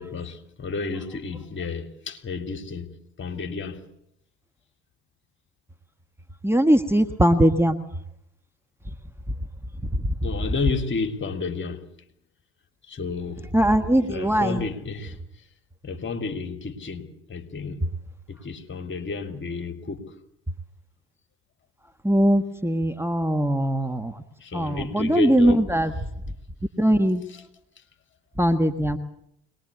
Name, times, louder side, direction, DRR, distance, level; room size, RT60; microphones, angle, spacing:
voice 1, 0.0-3.8 10.2-11.8 12.9-13.5 14.1-15.2 15.8-17.8 18.3-20.1 24.4-25.6, left 4 dB, 35° left, 2.9 m, -31 dB
voice 2, 6.4-7.8 9.8-10.1 13.5-14.6 22.0-24.2 24.5-25.9 26.8-27.2 28.4-29.0, right 1 dB, 5° right, 1.6 m, -21 dB
23.0 x 20.0 x 8.2 m
hypercardioid pair, 55°, 34 cm